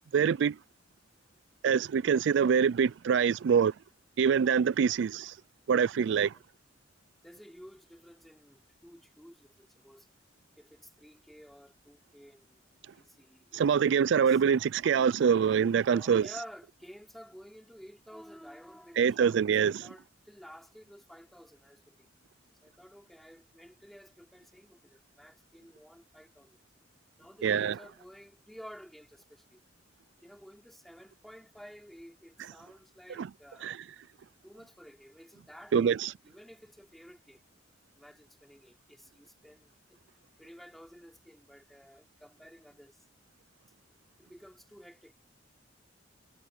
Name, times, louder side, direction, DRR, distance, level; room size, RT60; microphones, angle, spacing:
voice 1, 0.1-0.5 1.6-3.7 4.2-5.3 5.7-6.3 13.5-16.3 19.0-19.7 27.4-27.8 33.2-33.3 33.6-33.8 35.7-36.1, right 7 dB, 65° right, 0.3 m, -25 dB
voice 2, 6.0-6.4 7.2-10.1 10.6-12.6 12.9-14.4 15.9-22.1 22.6-26.6 27.2-29.6 30.2-33.8 34.4-37.4 38.0-40.0 40.4-43.0 44.2-45.1, equal, ahead, 4.5 m, -52 dB
head